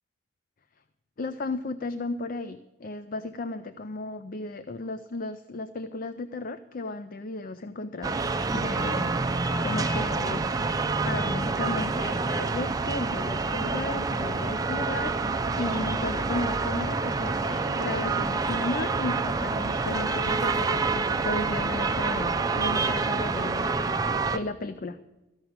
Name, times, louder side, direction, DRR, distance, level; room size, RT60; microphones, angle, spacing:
voice 1, 1.2-8.2 8.5-9.2 9.6-23.9 24.3-25.0, left 2 dB, 45° left, 11 dB, 0.5 m, -35 dB
sound 1, 8.0-24.4, right 3 dB, 20° right, 0.5 m, -27 dB
14.0 x 5.9 x 9.4 m, 1.1 s
head